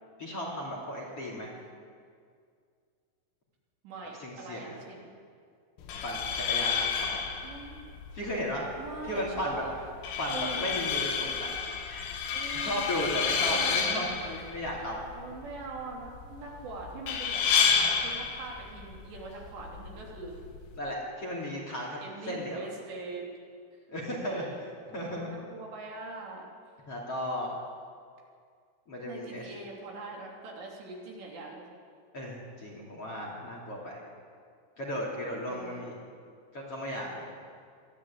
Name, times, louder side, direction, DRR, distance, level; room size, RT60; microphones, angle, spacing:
voice 1, 0.2-1.5 4.2-4.8 6.0-7.2 8.1-8.7 9.0-9.6 10.2-11.5 12.5-15.0 20.7-22.7 23.9-24.4 24.9-25.3 26.9-27.6 28.9-29.5 32.1-34.0 34.8-36.0 36.5-37.2, equal, 35° left, -3 dB, 3.3 m, -35 dB
voice 2, 1.3-1.8 3.8-5.1 7.4-7.8 8.8-9.8 10.3-10.8 12.3-12.8 13.5-14.3 15.1-20.3 22.0-23.3 24.2-24.6 24.9-26.4 29.0-31.6 35.5-35.9, right 3 dB, 65° right, -2 dB, 5.1 m, -42 dB
sound 1, 5.8-20.8, left 6 dB, 85° left, 4.3 m, -31 dB
23.0 x 14.5 x 8.6 m, 2.2 s
omnidirectional pair, 5.5 m